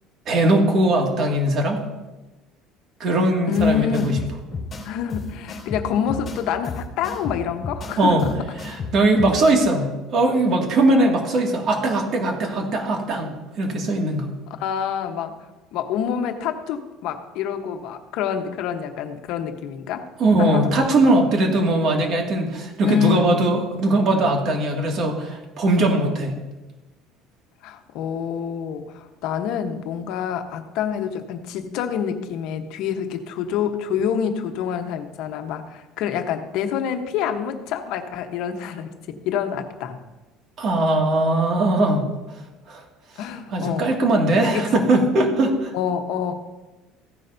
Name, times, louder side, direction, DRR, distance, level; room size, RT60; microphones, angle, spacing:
voice 1, 0.3-1.8 3.0-4.2 8.0-8.2 8.6-13.3 13.6-14.3 20.2-26.4 40.6-42.1 42.7-42.8 43.5-45.7, right 2 dB, 45° right, 1 dB, 2.2 m, -20 dB
voice 2, 3.5-4.3 4.8-8.3 14.6-15.5 15.7-20.1 20.4-20.7 22.8-23.3 27.6-40.0 43.2-43.9 44.5-44.7 45.7-46.3, left 8 dB, 65° left, 6 dB, 1.1 m, -27 dB
sound 1, 3.5-9.5, left 3 dB, 25° left, 3.1 m, -33 dB
15.5 x 10.0 x 2.7 m, 1.1 s
cardioid pair, 140°, 0 cm